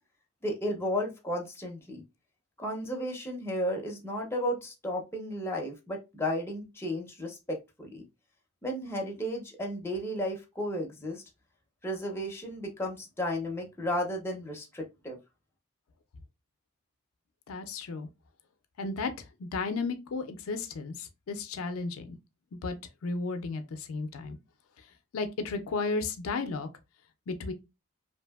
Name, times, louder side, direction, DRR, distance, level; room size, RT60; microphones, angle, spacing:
voice 1, 0.4-2.0 2.6-8.0 8.6-11.2 11.8-15.2, equal, 10° left, 0.5 m, -33 dB
voice 2, 17.5-18.1 18.8-19.1 19.4-22.2 22.5-22.8 23.0-24.4 25.1-26.7 27.3-27.5, left 3 dB, 70° left, 0.4 m, -33 dB
2.6 x 2.5 x 2.2 m
head